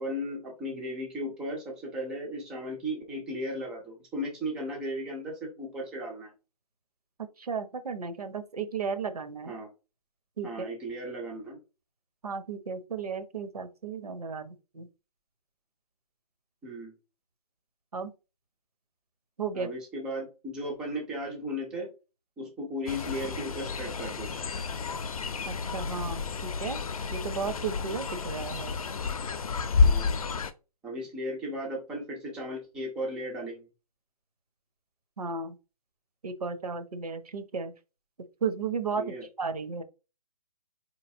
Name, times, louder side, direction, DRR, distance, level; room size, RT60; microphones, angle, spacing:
voice 1, 0.0-6.3 9.5-9.7 10.4-11.6 16.6-16.9 19.5-21.9 22.4-24.3 29.8-30.2 30.8-33.7 39.0-39.3, equal, 5° right, -1 dB, 0.3 m, -36 dB
voice 2, 7.4-9.5 10.4-10.5 12.2-14.9 17.9-18.1 19.4-19.7 25.5-26.8 27.1-28.8 35.2-35.6 36.2-37.7 38.4-39.0 39.4-39.8, right 5 dB, 75° right, 10 dB, 0.8 m, -34 dB
Fowl, 22.9-30.5, left 5 dB, 65° left, 0.5 m, -30 dB
3.9 x 3.1 x 2.6 m, 0.30 s
figure-of-eight pair, 140°, 20 cm